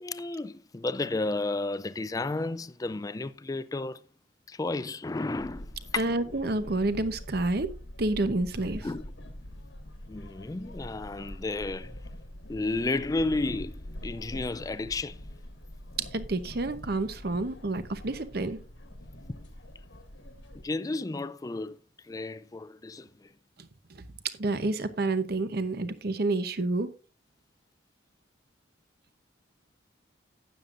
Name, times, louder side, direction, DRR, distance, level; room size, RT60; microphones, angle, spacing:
voice 1, 0.0-4.0 4.5-6.4 8.8-9.0 10.1-12.0 12.5-15.2 20.6-21.8 22.1-23.3, left 2 dB, 20° left, 0.3 m, -32 dB
sound 1, 5.4-20.7, left 1 dB, 75° left, 1.5 m, -44 dB
voice 2, 6.0-7.7 8.0-8.8 16.1-18.6 24.4-26.9, right 2 dB, 55° right, 0.9 m, -29 dB
12.5 x 9.2 x 2.6 m
head